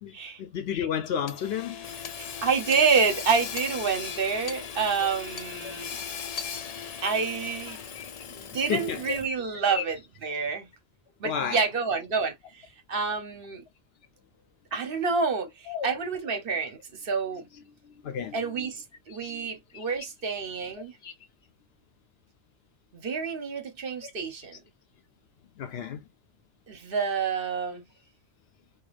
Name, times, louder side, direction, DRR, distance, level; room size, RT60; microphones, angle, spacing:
voice 1, 0.0-1.9 5.0-5.1 5.6-5.7 7.9-8.2 8.7-9.2 9.7-9.8 11.2-11.6 15.7-16.0 17.8-18.7 19.1-19.5 19.7-19.8 21.0-21.1 24.0-24.1 25.6-26.1, left 8 dB, 70° left, 0.8 m, -33 dB
Hammer / Sawing, 1.3-9.4, left 7 dB, 50° left, 0.5 m, -38 dB
voice 2, 2.4-6.0 7.0-7.8 8.3-10.0 10.2-10.7 11.2-13.6 14.7-17.5 18.3-20.9 22.9-24.6 26.7-27.8, right 5 dB, 60° right, 1.0 m, -28 dB
4.7 x 2.3 x 2.4 m
omnidirectional pair, 1.1 m